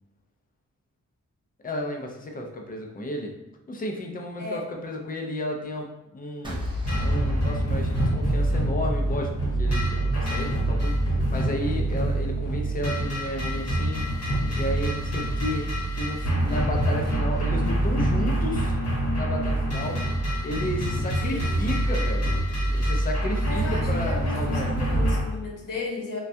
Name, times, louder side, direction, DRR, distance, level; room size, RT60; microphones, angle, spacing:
voice 1, 1.6-3.3 3.7-6.6 7.0-9.3 9.6-14.1 14.5-15.7 15.9-18.8 19.1-20.0 20.4-22.4 22.7-24.7, left 1 dB, 30° left, 1 dB, 0.4 m, -33 dB
sound 1, 6.4-8.8, left 2 dB, 15° right, 0.6 m, -31 dB
sound 2, 6.8-25.2, right 1 dB, 55° left, 0.9 m, -25 dB
voice 2, 23.5-26.2, left 3 dB, 85° left, -1 dB, 0.8 m, -34 dB
3.2 x 2.2 x 2.6 m, 0.95 s
wide cardioid pair, 140°, 31 cm